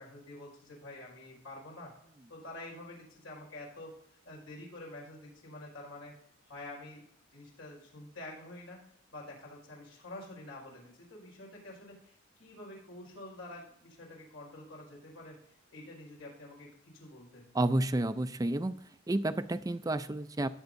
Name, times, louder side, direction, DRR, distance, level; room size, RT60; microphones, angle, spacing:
voice 1, 0.0-1.9 2.3-4.0 4.2-6.1 6.4-7.0 7.3-17.5, left 1 dB, 90° left, -2 dB, 5.1 m, -48 dB
voice 2, 17.5-18.7 19.1-20.5, right 1 dB, 15° right, 12 dB, 0.4 m, -30 dB
18.5 x 7.9 x 2.6 m, 0.73 s
head